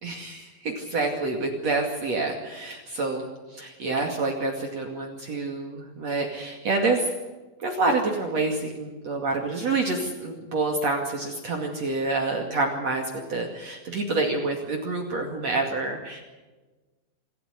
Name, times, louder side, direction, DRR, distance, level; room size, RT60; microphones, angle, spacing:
voice 1, 0.0-3.3 3.6-7.0 7.6-13.0 13.3-16.2, right 3 dB, 50° right, 2 dB, 3.3 m, -27 dB
27.0 x 14.0 x 8.3 m, 1.2 s
omnidirectional pair, 4.2 m